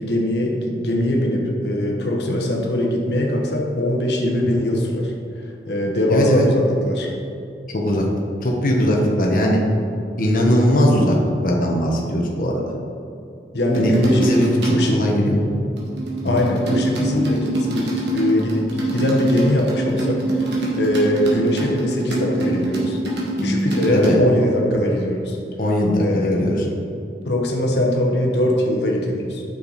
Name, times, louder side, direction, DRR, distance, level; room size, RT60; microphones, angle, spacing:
voice 1, 0.0-7.1 13.5-15.0 16.2-23.0 23.4-25.4 26.0-26.8 27.2-29.4, left 1 dB, 75° left, 0 dB, 1.3 m, -21 dB
voice 2, 6.1-6.5 7.7-8.0 8.4-9.6 10.2-11.1 11.4-12.6 13.8-13.9 14.2-15.4 16.2-16.4 23.9-24.2 25.6-26.6, equal, 50° left, -1 dB, 1.2 m, -19 dB
sound 1, 13.6-14.9 15.8-24.1, right 1 dB, 80° right, 2.0 m, -24 dB
9.0 x 6.8 x 4.2 m, 2.6 s
head